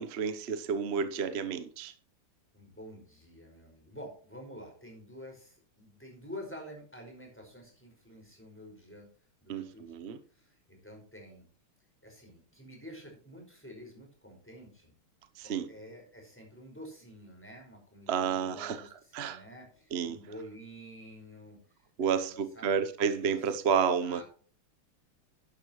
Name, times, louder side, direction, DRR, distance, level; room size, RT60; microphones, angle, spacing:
voice 1, 0.0-1.9 9.5-10.2 15.4-15.7 18.1-18.9 19.1-19.4 19.9-20.2 22.0-24.2, right 6 dB, 55° right, 0.7 m, -30 dB
voice 2, 2.5-9.1 9.4-11.4 12.0-14.9 15.4-22.8 23.1-23.6 24.0-24.2, equal, 5° left, 5.0 m, -49 dB
12.0 x 11.0 x 3.1 m
omnidirectional pair, 2.4 m